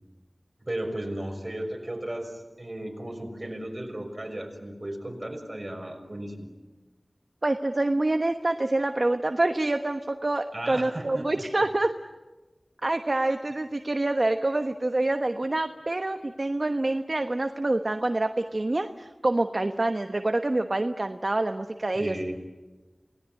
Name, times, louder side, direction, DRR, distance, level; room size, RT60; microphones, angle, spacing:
voice 1, 0.6-6.5 10.5-11.3 21.9-22.3, right 1 dB, 35° right, 3 dB, 6.0 m, -35 dB
voice 2, 7.4-11.9 12.8-22.2, right 2 dB, 50° right, 7 dB, 1.1 m, -26 dB
28.5 x 19.5 x 9.8 m, 1.2 s
wide cardioid pair, 55°, 0 cm